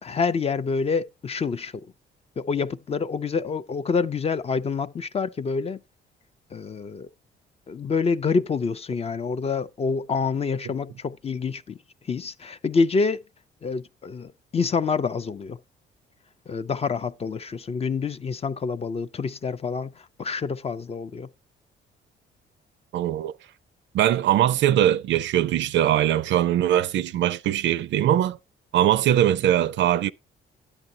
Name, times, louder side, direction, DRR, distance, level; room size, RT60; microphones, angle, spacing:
voice 1, 0.0-1.9 2.4-5.8 6.5-7.1 7.7-11.8 12.1-13.2 13.6-15.6 16.5-21.3, left 5 dB, 30° left, 0.4 m, -27 dB
voice 2, 22.9-23.3 23.9-28.4 28.7-30.1, right 11 dB, 70° right, 0.4 m, -21 dB
10.5 x 7.9 x 2.7 m
cardioid pair, 90°, 20 cm